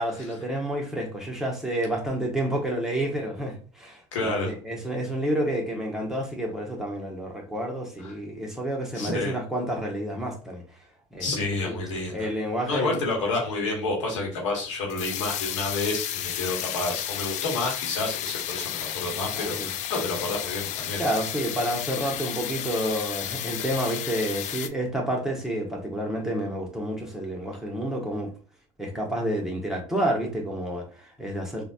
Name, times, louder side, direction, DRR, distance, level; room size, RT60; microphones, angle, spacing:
voice 1, 0.0-10.6 11.1-11.7 12.1-13.0 19.4-19.7 21.0-28.3 28.8-31.6, right 1 dB, 5° right, -1 dB, 1.2 m, -29 dB
voice 2, 4.1-4.5 8.0-8.1 8.9-9.3 11.2-12.3 12.7-21.0, left 2 dB, 85° left, -1 dB, 1.1 m, -29 dB
sound 1, 13.0-24.7, left 11 dB, 50° left, 0.4 m, -33 dB
3.9 x 2.3 x 2.5 m, 0.39 s
hypercardioid pair, 70°, 16 cm